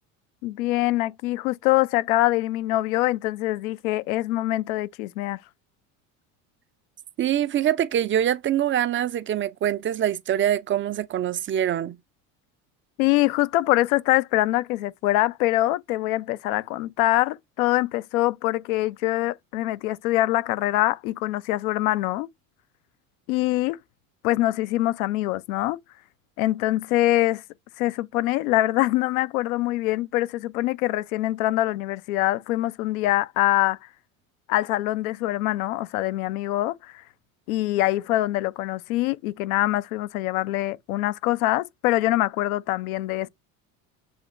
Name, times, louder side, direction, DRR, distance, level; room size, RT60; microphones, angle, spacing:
voice 1, 0.4-5.4 13.0-22.3 23.3-23.8 24.2-25.8 26.4-27.4 27.8-33.8 34.5-36.9 37.5-43.3, left 16 dB, 80° left, 0.6 m, -24 dB
voice 2, 7.2-12.0, right 11 dB, 30° right, 0.4 m, -24 dB
7.2 x 2.9 x 2.5 m
supercardioid pair, 85°, 41 cm